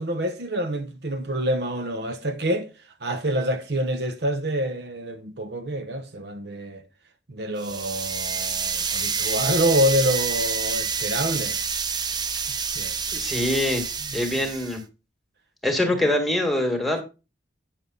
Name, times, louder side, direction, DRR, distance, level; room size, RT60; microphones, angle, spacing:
voice 1, 0.0-2.7 3.0-6.8 7.3-11.6 12.7-13.0 14.0-14.4, equal, 60° right, 1.0 m, -27 dB
sound 1, 7.6-14.8, right 6 dB, 25° right, 0.6 m, -28 dB
voice 2, 13.1-13.8 14.1-14.8 15.6-17.0, left 1 dB, ahead, 2.0 m, -24 dB
9.7 x 7.2 x 4.0 m
head